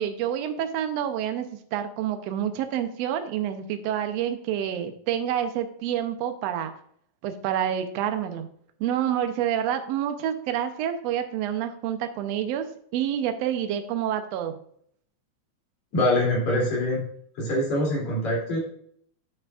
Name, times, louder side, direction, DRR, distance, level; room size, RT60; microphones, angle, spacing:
voice 1, 0.0-1.5 1.7-6.7 7.2-8.5 8.8-12.6 12.9-14.6, right 10 dB, 70° right, 8 dB, 1.6 m, -28 dB
voice 2, 15.9-17.0 17.4-18.6, left 1 dB, 60° left, -4 dB, 4.2 m, -24 dB
9.3 x 8.3 x 2.5 m, 0.64 s
omnidirectional pair, 3.7 m